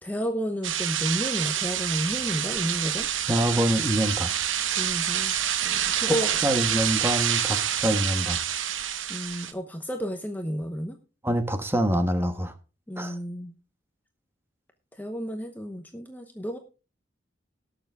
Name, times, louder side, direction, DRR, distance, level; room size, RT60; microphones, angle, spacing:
voice 1, 0.0-3.1 4.8-5.3 5.6-6.4 9.1-11.0 12.9-13.5 15.0-16.6, equal, 10° left, 5 dB, 0.9 m, -31 dB
sound 1, 0.6-9.5, right 10 dB, 80° right, 1.0 m, -27 dB
voice 2, 3.3-4.3 6.0-8.4 11.2-12.5 13.0-13.2, equal, 10° right, 8 dB, 1.2 m, -25 dB
18.5 x 6.8 x 3.5 m, 0.33 s
head